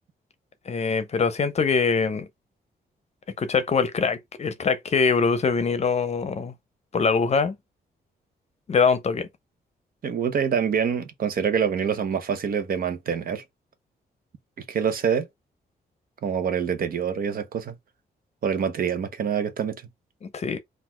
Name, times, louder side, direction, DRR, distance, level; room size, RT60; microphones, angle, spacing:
voice 1, 0.7-2.3 3.4-6.5 6.9-7.6 8.7-9.3 20.2-20.6, left 5 dB, 40° left, 0.7 m, -23 dB
voice 2, 10.0-13.4 14.7-15.3 16.2-17.7 18.4-19.8, right 7 dB, 60° right, 0.9 m, -25 dB
4.1 x 2.5 x 4.4 m
cardioid pair, 125°, 17 cm